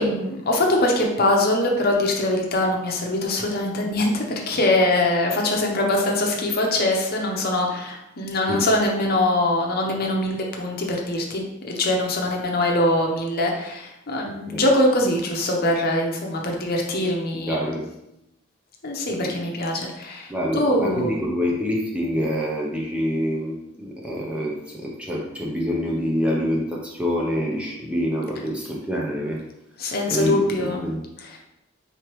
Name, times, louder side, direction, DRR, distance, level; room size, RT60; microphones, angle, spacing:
voice 1, 0.0-17.7 18.8-21.1 29.8-30.9 31.2-31.4, left 1 dB, 45° left, 0 dB, 0.7 m, -23 dB
voice 2, 17.5-17.8 19.2-19.3 20.3-29.4 30.1-31.0, equal, 5° right, -3 dB, 0.5 m, -26 dB
4.7 x 3.2 x 3.0 m, 0.87 s
head